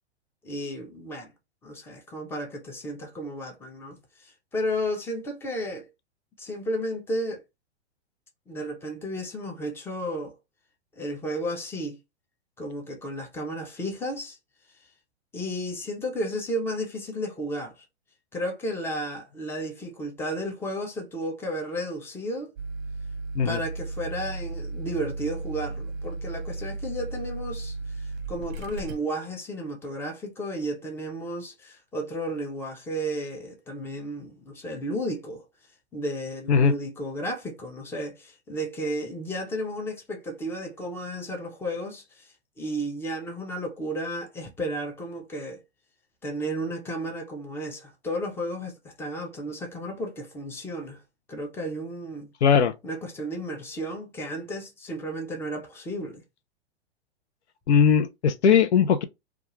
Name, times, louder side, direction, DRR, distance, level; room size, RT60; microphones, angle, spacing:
voice 1, 0.4-1.3 1.6-5.9 6.4-7.4 8.5-10.3 11.0-12.0 12.6-14.4 15.3-17.8 18.3-22.5 23.4-35.4 35.9-45.6 46.2-51.0 51.3-52.3 52.8-56.2, equal, 5° left, 0.5 m, -33 dB
sound 1, 22.6-29.0, right 3 dB, 45° right, 0.5 m, -35 dB
voice 2, 52.4-52.7 57.7-59.0, left 7 dB, 75° left, 0.6 m, -19 dB
2.4 x 2.3 x 2.9 m
hypercardioid pair, 115°, 34 cm